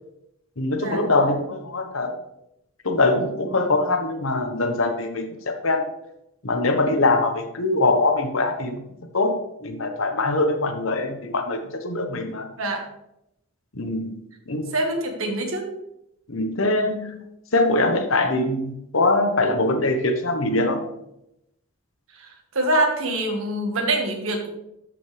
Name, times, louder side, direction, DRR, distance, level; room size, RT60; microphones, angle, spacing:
voice 1, 0.6-2.1 2.8-5.9 6.4-8.9 9.1-12.5 13.7-14.1 14.5-14.8 16.3-17.3 17.5-20.8, left 2 dB, 75° left, 6 dB, 1.1 m, -23 dB
voice 2, 14.7-15.7 22.5-24.5, right 1 dB, 85° right, 2 dB, 1.6 m, -24 dB
13.0 x 5.2 x 3.3 m, 0.83 s
head